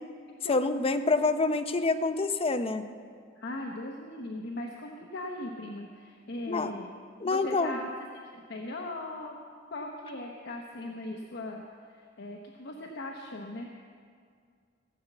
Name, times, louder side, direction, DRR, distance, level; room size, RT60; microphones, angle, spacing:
voice 1, 0.5-2.9 6.5-6.7 7.2-7.8, left 3 dB, 30° left, 8 dB, 0.6 m, -27 dB
voice 2, 3.4-6.9 7.2-7.9 8.3-9.3 9.7-11.6 11.9-13.7, left 1 dB, 60° left, 1 dB, 0.9 m, -39 dB
17.0 x 6.7 x 8.2 m, 2.1 s
head